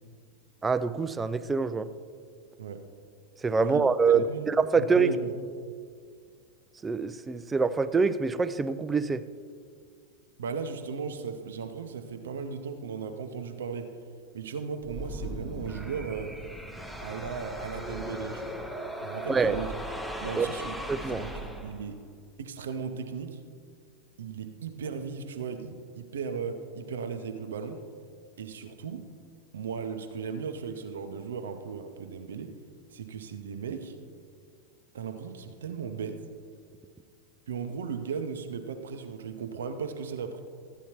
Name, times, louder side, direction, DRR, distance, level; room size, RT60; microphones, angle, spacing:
voice 1, 0.6-1.9 3.4-5.1 6.8-9.2 19.3-19.6 20.4-20.5 20.9-21.2, right 4 dB, 15° right, 13 dB, 0.3 m, -25 dB
voice 2, 4.1-4.5 4.8-5.3 10.4-13.9 14.3-16.4 17.0-18.6 19.0-19.7 20.2-20.8 21.1-22.0 22.4-23.4 24.2-27.8 28.4-29.1 29.5-32.5 32.9-34.0 34.9-36.2 37.5-40.4, right 6 dB, 65° right, 7 dB, 0.6 m, -36 dB
sound 1, 14.8-22.0, equal, ahead, 0.7 m, -38 dB
13.0 x 9.0 x 2.9 m, 2.1 s
figure-of-eight pair, 90°, 0 cm